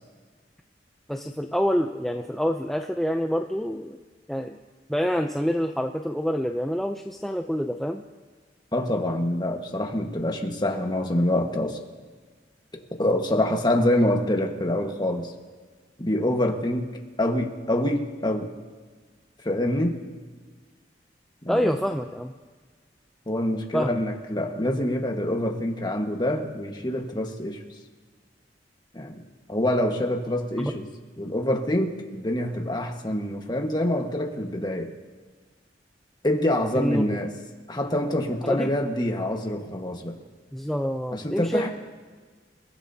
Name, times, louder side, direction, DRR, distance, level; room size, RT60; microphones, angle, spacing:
voice 1, 1.1-4.0 4.3-4.6 4.9-8.0 21.5-22.3 23.7-24.0 30.6-30.7 36.7-37.0 38.4-38.7 40.5-41.7, equal, ahead, 3 dB, 0.5 m, -26 dB
voice 2, 8.7-11.8 12.9-15.3 16.0-18.6 19.4-20.0 21.4-21.8 23.3-27.6 28.9-29.2 29.5-30.9 31.2-34.9 36.2-37.3 37.7-40.2 41.1-41.7, left 1 dB, 25° left, 2 dB, 1.5 m, -26 dB
29.0 x 16.0 x 2.8 m, 1.5 s
head